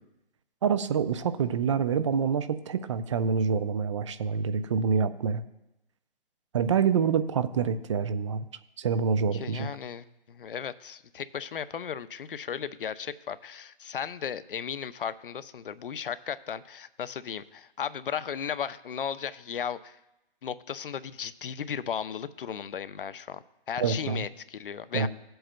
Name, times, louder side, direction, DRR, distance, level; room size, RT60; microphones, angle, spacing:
voice 1, 0.6-5.4 6.5-8.4 8.8-9.7 23.8-24.3 24.9-25.1, right 6 dB, 30° right, 13 dB, 0.4 m, -26 dB
voice 2, 9.3-20.0 20.4-25.1, left 8 dB, 65° left, 14 dB, 0.6 m, -35 dB
17.0 x 7.8 x 2.2 m, 0.91 s
figure-of-eight pair, 135°, 29 cm